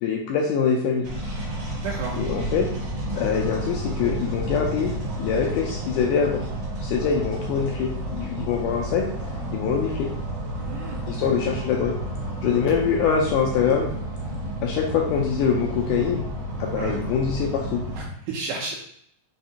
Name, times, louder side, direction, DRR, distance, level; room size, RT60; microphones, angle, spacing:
voice 1, 0.0-1.1 2.2-2.7 3.1-4.9 5.2-6.4 6.8-9.1 9.5-10.1 11.1-12.0 12.4-13.9 14.6-16.2 16.6-17.8, left 7 dB, 85° left, 0 dB, 1.8 m, -24 dB
sound 1, 1.0-18.1, right 1 dB, 60° right, 1.2 m, -31 dB
voice 2, 1.8-2.2 10.5-11.0 16.8-17.0 17.9-18.8, right 4 dB, 80° right, -1 dB, 1.8 m, -32 dB
5.5 x 3.3 x 2.8 m, 0.68 s
omnidirectional pair, 4.1 m